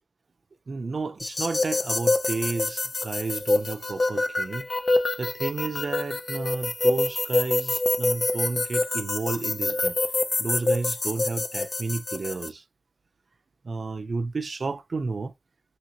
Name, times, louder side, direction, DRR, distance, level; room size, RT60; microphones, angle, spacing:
voice 1, 0.7-4.7 5.2-9.9 10.4-12.6 13.6-15.3, right 3 dB, 85° right, 0.4 m, -31 dB
sound 1, 1.2-12.5, left 2 dB, 65° left, 0.5 m, -26 dB
2.8 x 2.8 x 2.6 m
wide cardioid pair, 55°, 0 cm